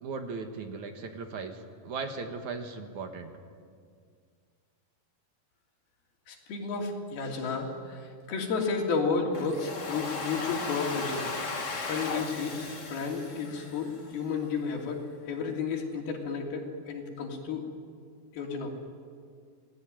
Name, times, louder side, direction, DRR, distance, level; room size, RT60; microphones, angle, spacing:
voice 1, 0.0-3.3, right 4 dB, 60° right, 5 dB, 2.7 m, -37 dB
voice 2, 6.3-11.2 11.8-12.6 12.9-17.7 18.3-18.7, left 5 dB, 85° left, 1 dB, 4.9 m, -32 dB
Domestic sounds home sounds, 9.3-14.3, left 3 dB, 35° left, 1.2 m, -36 dB
28.0 x 19.5 x 9.1 m, 2.1 s
omnidirectional pair, 4.3 m